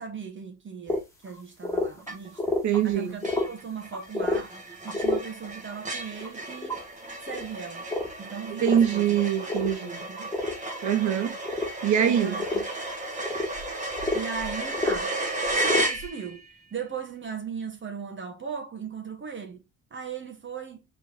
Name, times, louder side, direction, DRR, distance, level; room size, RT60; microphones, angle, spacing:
voice 1, 0.0-2.6 2.8-4.5 4.8-6.8 7.2-7.8 8.2-9.2 10.0-10.3 12.0-12.6 14.1-15.1 15.5-16.4 16.7-19.6 19.9-20.8, right 6 dB, 40° right, 1.4 m, -37 dB
sound 1, 0.9-1.0 1.3-1.4 1.6-2.8 3.1-3.5 3.9-4.4 4.9-5.2 6.2-6.8 7.3-7.5 7.9-8.1 8.7-9.0 9.4-9.7 10.2-10.8 11.4-11.7 12.0-12.1 12.4-12.9 13.2-15.0 15.5-16.1, left 2 dB, 10° left, 1.8 m, -29 dB
sound 2, 2.1-2.5 2.9-3.0 3.2-16.5, right 2 dB, 25° right, 1.9 m, -34 dB
voice 2, 2.6-3.2 8.6-10.0 10.8-11.4 11.8-12.3, right 9 dB, 70° right, 1.3 m, -23 dB
4.6 x 3.5 x 2.9 m
cardioid pair, 90°, 30 cm